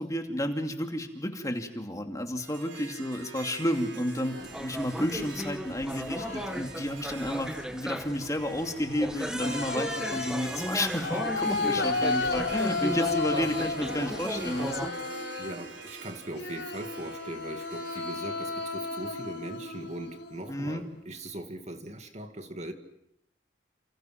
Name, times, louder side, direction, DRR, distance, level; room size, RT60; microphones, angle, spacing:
voice 1, 0.0-14.9 20.5-20.8, left 1 dB, 20° left, 2.6 m, -31 dB
Harp, 2.4-19.6, right 4 dB, 80° right, 4.6 m, -45 dB
sound 1, 3.8-4.7 5.6-6.9 7.3-7.9 8.9-15.8 16.3-20.6, left 3 dB, 75° left, 5.1 m, -34 dB
sound 2, 4.4-14.9, equal, 5° right, 1.5 m, -36 dB
voice 2, 15.4-22.7, right 1 dB, 40° right, 2.2 m, -40 dB
30.0 x 28.0 x 6.0 m
head